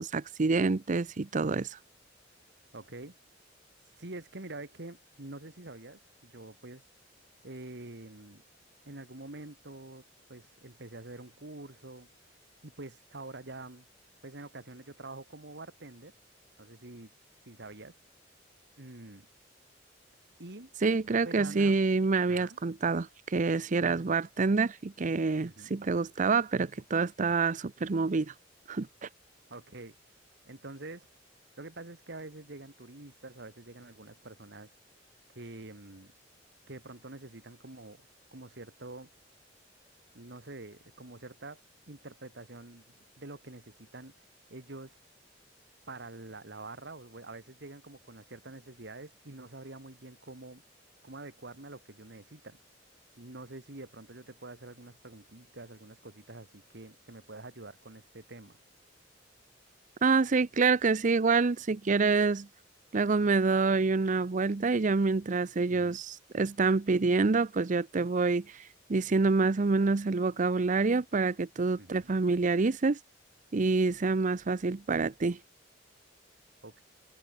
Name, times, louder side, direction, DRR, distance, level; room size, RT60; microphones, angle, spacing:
voice 1, 0.0-1.8 20.8-28.3 28.7-29.1 60.0-62.5 62.9-68.6 68.9-73.0 73.5-75.4, right 4 dB, 45° right, 0.6 m, -27 dB
voice 2, 2.7-3.2 4.0-6.9 7.4-8.4 8.9-10.0 10.3-12.1 12.6-13.9 14.2-16.1 16.6-17.1 17.5-17.9 18.8-19.3 20.4-20.7 21.2-21.8 22.3-22.6 25.4-25.8 29.5-30.0 30.5-31.1 31.6-34.7 35.4-36.1 36.7-39.1 40.1-41.6 41.9-42.8 43.2-44.1 44.5-45.0 45.9-50.6 51.0-52.6 53.2-58.6 65.7-66.0 71.8-72.1 76.6-76.8, right 2 dB, 65° right, 2.1 m, -46 dB
head